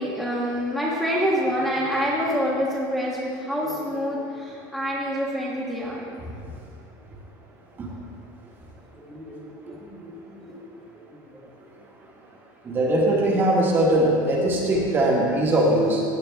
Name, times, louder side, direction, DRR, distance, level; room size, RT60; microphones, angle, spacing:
voice 1, 0.0-6.1 9.0-10.6 11.3-11.5, equal, 5° left, -6 dB, 1.3 m, -27 dB
voice 2, 12.6-16.0, right 1 dB, 20° right, -2 dB, 1.7 m, -20 dB
16.5 x 8.8 x 3.5 m, 2.4 s
cardioid pair, 170°, 10 cm